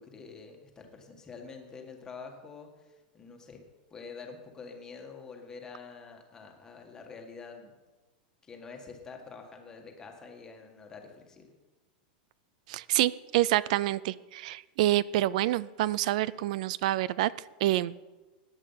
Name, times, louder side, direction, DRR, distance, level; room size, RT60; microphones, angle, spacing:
voice 1, 0.0-3.6 3.9-7.7 8.4-11.5, left 5 dB, 10° left, 2 dB, 1.8 m, -47 dB
voice 2, 12.7-17.3 17.6-18.0, right 15 dB, 50° right, 20 dB, 0.4 m, -27 dB
17.5 x 10.5 x 5.8 m, 1.2 s
supercardioid pair, 170°, 5 cm